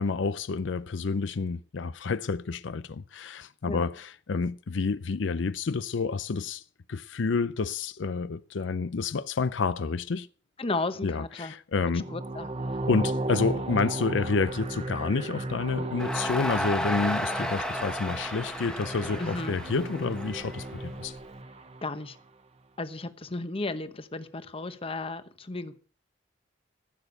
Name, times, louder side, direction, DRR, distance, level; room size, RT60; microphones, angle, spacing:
voice 1, 0.0-6.6 6.9-10.3 11.0-12.1 12.9-21.2, left 4 dB, 75° left, 0.5 m, -29 dB
voice 2, 10.6-11.5 11.8-12.9 19.2-19.5 21.8-22.2 22.8-25.8, left 2 dB, 30° left, 0.9 m, -34 dB
sound 1, 11.9-22.1, right 2 dB, 35° right, 0.9 m, -35 dB
Crowd, 16.0-21.2, left 1 dB, 5° left, 1.0 m, -33 dB
15.0 x 7.0 x 8.1 m
head